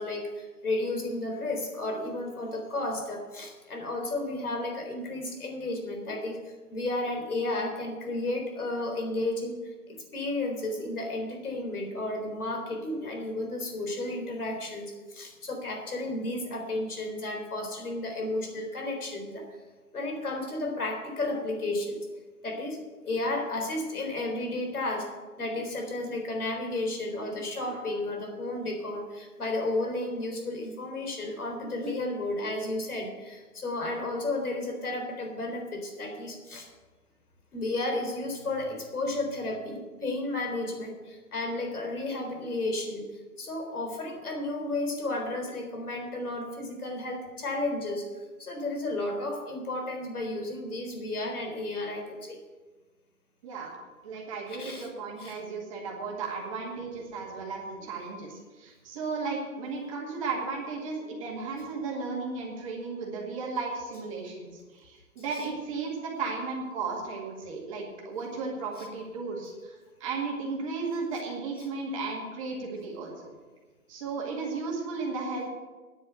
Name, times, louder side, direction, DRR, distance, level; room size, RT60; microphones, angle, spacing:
voice 1, 0.0-19.5 19.9-22.0 22.4-22.8 23.0-36.7 37.5-48.0 48.4-52.4 54.5-54.9 55.2-55.4 65.3-65.4 68.8-68.9, left 2 dB, 70° left, 3 dB, 3.9 m, -33 dB
voice 2, 54.0-73.3 73.9-75.5, right 4 dB, 20° right, -1 dB, 2.0 m, -35 dB
10.0 x 7.7 x 9.1 m, 1.3 s
hypercardioid pair, 160°, 45 cm